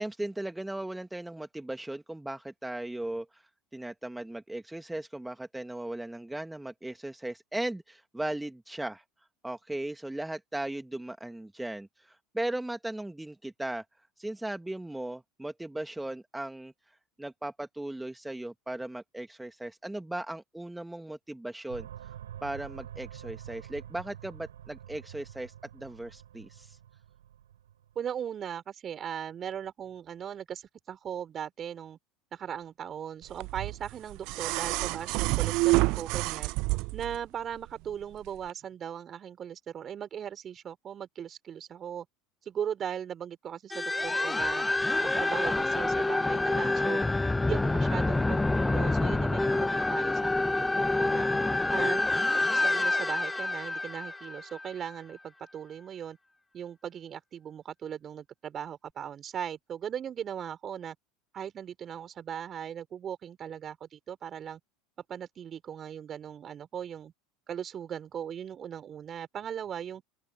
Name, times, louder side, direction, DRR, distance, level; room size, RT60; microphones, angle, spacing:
voice 1, 0.0-9.0 9.4-13.8 14.2-22.1 22.4-26.8, right 1 dB, 5° right, 1.9 m, -37 dB
sound 1, 21.7-28.0, right 10 dB, 80° right, 3.3 m, -47 dB
voice 2, 28.0-32.0 32.3-36.5 36.9-42.1 42.5-44.7 45.0-47.0 47.4-51.3 51.7-56.2 56.5-61.0 61.3-64.6 65.1-67.1 67.5-70.0, right 9 dB, 35° right, 5.4 m, -38 dB
sound 2, 33.4-37.2 38.4-38.5, right 25 dB, 60° right, 0.7 m, -28 dB
sound 3, 43.7-54.9, left 2 dB, 10° left, 1.1 m, -27 dB
hypercardioid pair, 75°, 0 cm